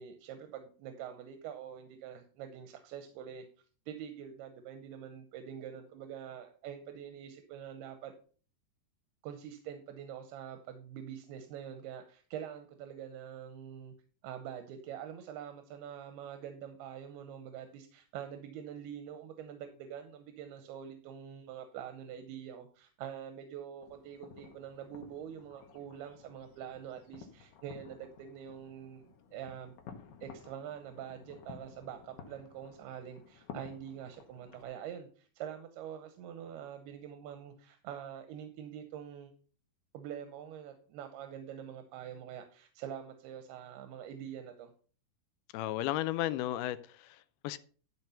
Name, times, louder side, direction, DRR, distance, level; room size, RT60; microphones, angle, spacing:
voice 1, 0.0-3.5 3.9-8.1 9.2-13.9 14.2-29.8 30.2-39.3 39.9-44.7, right 9 dB, 85° right, 2.8 m, -45 dB
sound 1, 23.8-34.6, left 7 dB, 65° left, 2.5 m, -53 dB
voice 2, 45.5-47.6, left 14 dB, 80° left, 2.4 m, -34 dB
12.0 x 4.6 x 5.6 m
omnidirectional pair, 4.5 m